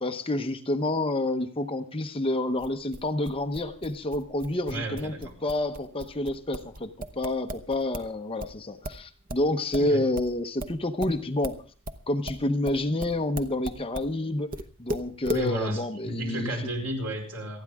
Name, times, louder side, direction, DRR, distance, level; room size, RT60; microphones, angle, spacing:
voice 1, 0.0-5.1 5.4-11.6 12.1-14.5 14.8-16.5, left 1 dB, 25° left, 6 dB, 0.9 m, -28 dB
sound 1, 2.6-8.1 8.4-14.1 14.5-15.5, equal, 40° right, 0.9 m, -37 dB
voice 2, 4.7-5.3 9.8-10.0 15.3-17.6, equal, 80° right, 1 dB, 5.0 m, -32 dB
27.5 x 9.6 x 3.6 m, 0.39 s
head